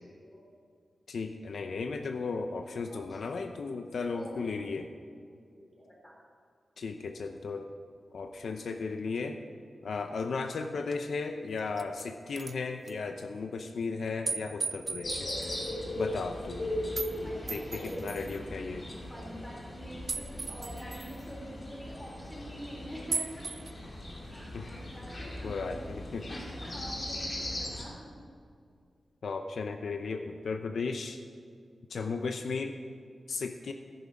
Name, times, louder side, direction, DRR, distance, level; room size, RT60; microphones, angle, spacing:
voice 1, 0.1-0.5 2.9-3.4 4.1-4.6 5.5-6.1 17.2-17.9 19.1-23.4 24.3-25.6 26.3-28.1, equal, 10° left, -4 dB, 4.1 m, -46 dB
voice 2, 1.1-4.9 6.8-7.7 8.1-9.4 9.8-15.3 16.0-16.6 17.5-18.9 24.5-24.7 25.4-26.2 29.2-31.2 31.9-32.8 33.3-33.7, left 4 dB, 75° left, 6 dB, 0.7 m, -35 dB
sound 1, 10.9-11.0 11.6-12.0 12.4-12.5 12.9-13.0 14.2-15.7 16.9-17.1 17.5-18.4 20.1-21.2 23.1-23.7, right 4 dB, 40° right, 0.4 m, -37 dB
sound 2, 15.0-27.8, left 1 dB, 35° left, 2.4 m, -39 dB
13.5 x 11.0 x 5.1 m, 2.2 s
wide cardioid pair, 165°, 0 cm